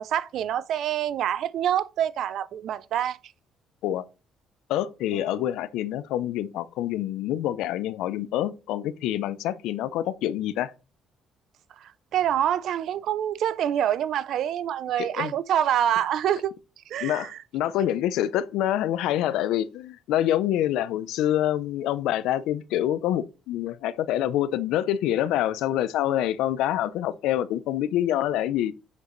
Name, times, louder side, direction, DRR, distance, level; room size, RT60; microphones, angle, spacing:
voice 1, 0.0-3.2 5.1-5.2 11.8-16.5 16.9-17.3, right 10 dB, 60° right, 0.4 m, -26 dB
voice 2, 4.7-10.7 15.0-15.3 17.0-28.7, left 12 dB, 80° left, 0.5 m, -26 dB
7.2 x 6.6 x 3.1 m
cardioid pair, 130°, 0 cm